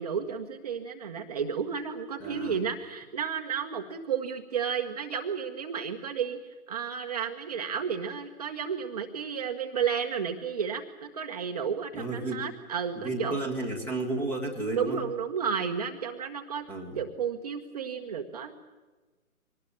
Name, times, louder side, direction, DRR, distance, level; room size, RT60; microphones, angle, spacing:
voice 1, 0.0-13.4 14.7-16.6 16.9-18.5, right 7 dB, 25° right, 4 dB, 1.3 m, -32 dB
voice 2, 2.2-2.6 11.9-12.4 13.0-15.0 16.7-17.0, right 2 dB, 5° left, 2 dB, 1.6 m, -32 dB
24.0 x 19.5 x 8.7 m, 1.2 s
figure-of-eight pair, 150°, 43 cm